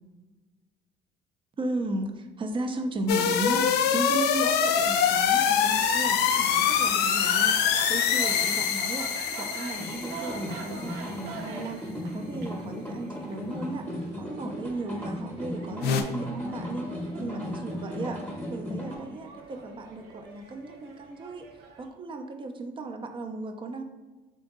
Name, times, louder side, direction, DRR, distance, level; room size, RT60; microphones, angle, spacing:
voice 1, 1.6-7.6 7.9-13.9 14.2-16.9 17.2-18.2 18.5-21.5 21.8-23.8, right 2 dB, 30° right, 6 dB, 0.5 m, -35 dB
sound 1, 3.1-10.9 15.8-16.0, left 8 dB, 75° left, 0.4 m, -24 dB
sound 2, 5.2-21.9, right 4 dB, 85° right, 0.8 m, -44 dB
sound 3, 9.8-19.0, left 1 dB, 10° left, 0.9 m, -37 dB
3.7 x 2.6 x 3.7 m, 1.2 s
cardioid pair, 110°, 17 cm